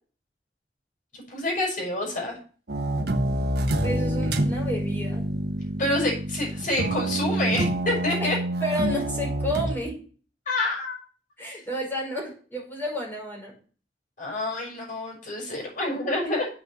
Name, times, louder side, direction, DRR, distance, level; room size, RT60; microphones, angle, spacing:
voice 1, 1.3-2.4 5.8-8.4 10.5-10.9 11.5-11.6 14.2-16.5, left 1 dB, 50° left, -2 dB, 6.0 m, -27 dB
sound 1, 2.7-9.8, right 1 dB, 65° right, 1.3 m, -27 dB
voice 2, 3.8-5.4 8.2-8.3 8.6-10.0 11.4-13.5, equal, 10° left, -2 dB, 5.4 m, -31 dB
8.0 x 6.6 x 7.3 m, 0.40 s
head